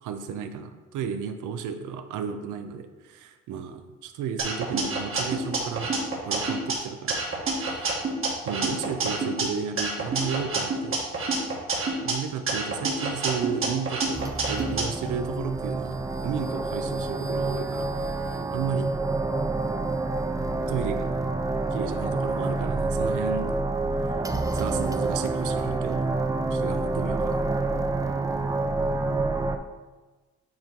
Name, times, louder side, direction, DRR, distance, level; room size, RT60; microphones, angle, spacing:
voice 1, 0.0-5.9 6.2-7.2 8.5-11.0 12.0-16.0 16.2-18.9 20.7-21.1 21.7-23.6 24.5-26.1 26.5-27.5, right 7 dB, 80° right, 8 dB, 0.6 m, -33 dB
sound 1, 4.4-6.7 7.1-9.4 9.8-12.1 12.5-14.8, right 3 dB, 45° right, 1.4 m, -28 dB
sound 2, 14.1-29.6, right 3 dB, 10° right, 0.3 m, -28 dB
8.7 x 2.9 x 3.7 m, 1.3 s
cardioid pair, 90°, 30 cm